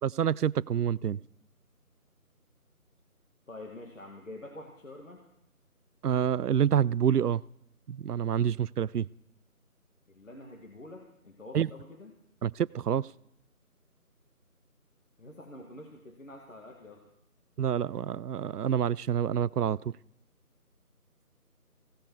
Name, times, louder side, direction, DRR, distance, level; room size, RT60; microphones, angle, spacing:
voice 1, 0.0-1.2 6.0-7.4 7.9-9.1 11.5-11.7 12.4-13.1 17.6-19.9, right 9 dB, 90° right, 22 dB, 0.6 m, -27 dB
voice 2, 3.5-5.2 10.1-12.2 15.2-17.0, left 2 dB, 55° left, 1 dB, 2.1 m, -47 dB
17.0 x 15.0 x 4.7 m, 0.76 s
figure-of-eight pair, 175°, 45 cm